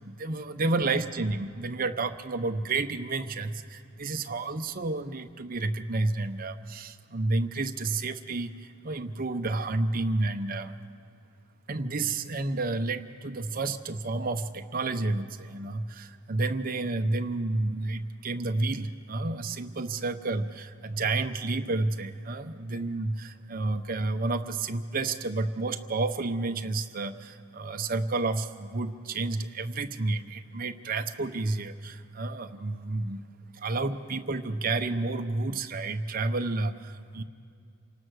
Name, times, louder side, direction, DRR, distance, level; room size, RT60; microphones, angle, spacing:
voice 1, 0.0-10.8 11.7-33.2 33.5-37.2, right 3 dB, 40° right, 7 dB, 0.8 m, -30 dB
28.0 x 18.5 x 6.4 m, 2.4 s
head